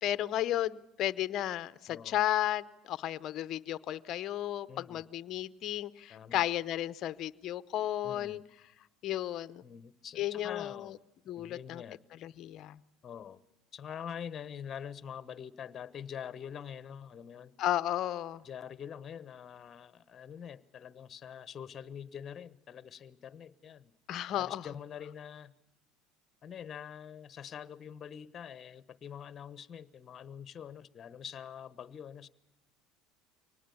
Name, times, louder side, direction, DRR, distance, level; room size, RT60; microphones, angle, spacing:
voice 1, 0.0-8.4 9.0-9.6 10.2-11.0 11.3-11.8 12.2-12.8 17.6-18.4 24.1-24.7, left 12 dB, 55° left, 15 dB, 0.7 m, -33 dB
voice 2, 1.9-2.2 4.7-5.0 6.1-6.4 8.0-8.4 9.6-11.0 11.4-12.0 13.0-13.4 13.7-17.5 18.4-23.9 24.3-25.5 26.4-32.3, left 8 dB, 35° left, 16 dB, 1.1 m, -45 dB
24.0 x 19.5 x 7.1 m, 0.96 s
hypercardioid pair, 85°, 0 cm